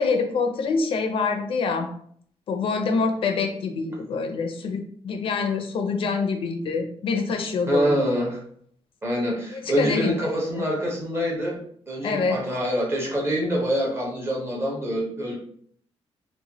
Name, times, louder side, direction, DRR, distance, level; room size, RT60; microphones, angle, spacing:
voice 1, 0.0-1.9 2.5-8.0 9.5-10.2 12.0-12.4, left 4 dB, 55° left, 4 dB, 0.4 m, -25 dB
voice 2, 7.7-8.4 9.0-11.6 11.9-15.4, equal, 25° right, -2 dB, 0.6 m, -25 dB
2.9 x 2.1 x 2.7 m, 0.62 s
wide cardioid pair, 170°, 11 cm